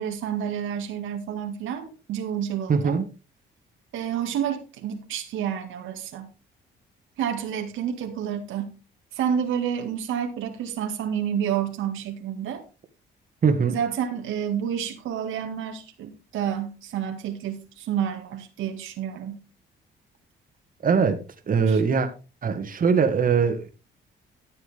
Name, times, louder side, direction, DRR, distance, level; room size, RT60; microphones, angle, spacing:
voice 1, 0.0-3.0 3.9-6.3 7.2-8.8 9.1-12.6 13.7-19.4 21.7-21.8, right 9 dB, 85° right, 2.0 m, -29 dB
voice 2, 2.7-3.1 13.4-13.8 20.8-21.2 21.5-22.1 22.4-23.7, right 5 dB, 45° right, 1.8 m, -21 dB
13.5 x 7.7 x 3.6 m
cardioid pair, 90°, 20 cm